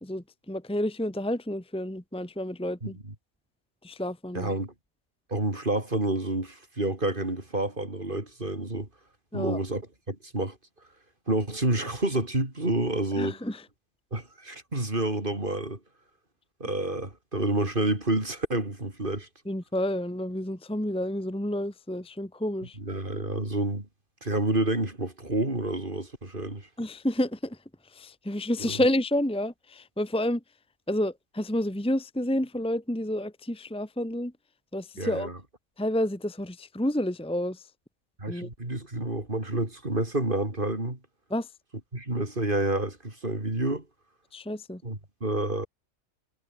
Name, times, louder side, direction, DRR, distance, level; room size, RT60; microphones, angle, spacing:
voice 1, 0.0-3.0 3.8-4.5 9.3-9.6 13.1-13.6 19.4-22.8 26.8-30.4 30.9-34.3 34.7-35.3 35.8-37.7 38.3-38.5 41.3-41.5 44.3-44.8, left 1 dB, 5° left, 1.5 m, -30 dB
voice 2, 4.3-4.7 5.3-8.9 9.3-9.8 10.1-10.5 11.3-13.4 14.1-15.8 16.6-19.3 22.8-23.9 24.2-26.7 28.6-28.7 35.0-35.3 38.2-41.0 41.9-43.8 44.8-45.7, right 2 dB, 35° right, 5.1 m, -29 dB
omnidirectional pair, 1.4 m